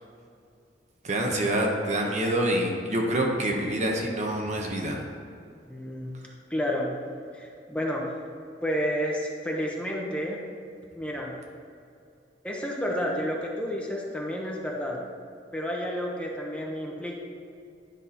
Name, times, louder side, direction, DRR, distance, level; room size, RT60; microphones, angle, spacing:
voice 1, 1.0-5.0, right 1 dB, 40° right, 1 dB, 1.0 m, -26 dB
voice 2, 5.7-6.1 6.5-6.9 7.3-8.0 8.6-10.4 10.9-11.3 12.4-15.0 15.5-17.1, equal, 5° left, -2 dB, 1.0 m, -30 dB
10.0 x 5.4 x 4.3 m, 2.5 s
head